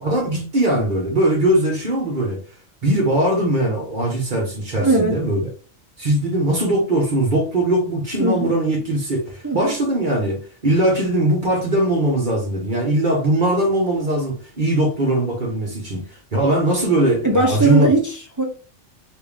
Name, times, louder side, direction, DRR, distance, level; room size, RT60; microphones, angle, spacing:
voice 1, 0.0-2.4 2.8-5.4 6.0-16.0 16.3-17.9, right 1 dB, 40° right, 1.1 m, -20 dB
voice 2, 4.8-5.2 8.2-8.5 9.4-9.8 17.2-18.4, right 3 dB, 20° right, 0.5 m, -19 dB
3.3 x 2.6 x 3.4 m
omnidirectional pair, 1.3 m